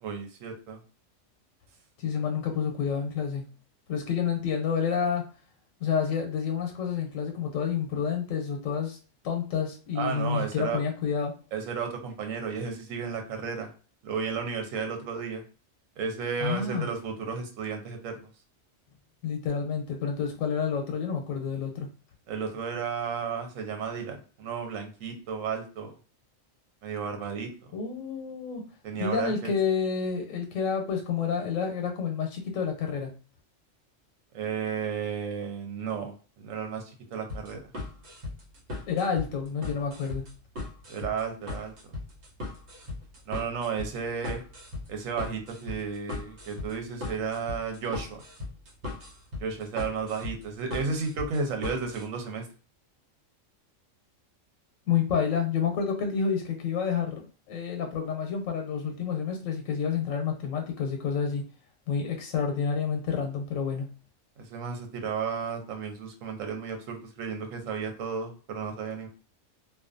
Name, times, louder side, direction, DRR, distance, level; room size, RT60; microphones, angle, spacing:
voice 1, 0.0-0.8 10.0-10.8 11.5-13.7 14.0-15.4 16.0-18.3 22.3-26.0 26.8-27.5 28.8-29.5 34.3-37.6 40.9-41.7 43.3-44.4 44.9-48.2 49.4-52.5 64.4-69.1, right 6 dB, 80° right, 4 dB, 1.0 m, -33 dB
voice 2, 2.0-3.5 3.9-5.2 5.8-9.0 9.2-11.3 16.4-16.9 19.2-21.9 27.7-28.6 29.0-33.1 38.9-40.3 54.9-61.4 61.9-63.9, left 6 dB, 90° left, 3 dB, 1.0 m, -29 dB
sound 1, 37.3-52.1, left 3 dB, 60° right, 1.1 m, -38 dB
2.4 x 2.2 x 2.4 m, 0.36 s
omnidirectional pair, 1.3 m